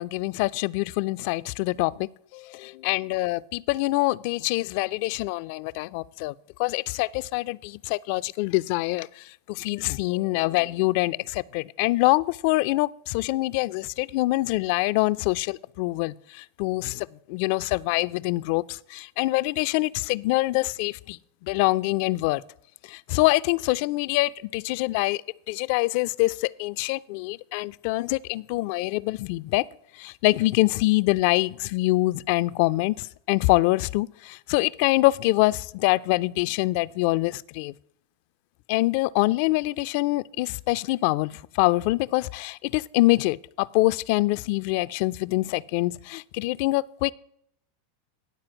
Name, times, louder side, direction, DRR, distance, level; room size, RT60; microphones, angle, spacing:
voice 1, 0.0-6.3 6.6-22.4 22.9-25.2 25.5-29.7 30.0-37.7 38.7-47.1, left 20 dB, 60° left, 0.3 m, -25 dB
10.5 x 4.3 x 7.7 m
hypercardioid pair, 110°, 0 cm